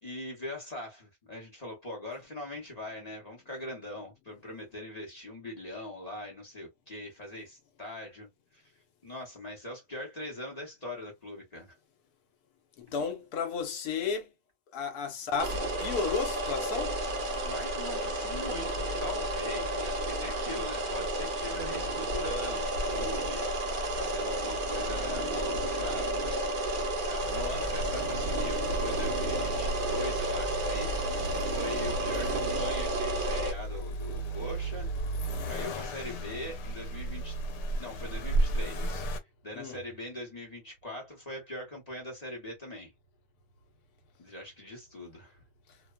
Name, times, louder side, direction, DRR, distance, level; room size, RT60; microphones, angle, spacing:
voice 1, 0.0-8.3 8.5-8.7 9.0-11.7 17.4-30.9 31.5-34.9 35.5-37.4 37.8-39.1 39.4-42.9 44.2-45.4, left 1 dB, 35° left, 0.7 m, -41 dB
voice 2, 12.8-14.3 14.7-16.9 22.9-23.1 39.5-39.8, left 5 dB, 70° left, 1.3 m, -33 dB
sound 1, 15.4-33.5, right 1 dB, 55° right, 0.5 m, -31 dB
Accelerating revving vroom, 27.2-39.2, right 2 dB, 90° left, 1.2 m, -34 dB
2.8 x 2.2 x 2.2 m
omnidirectional pair, 1.8 m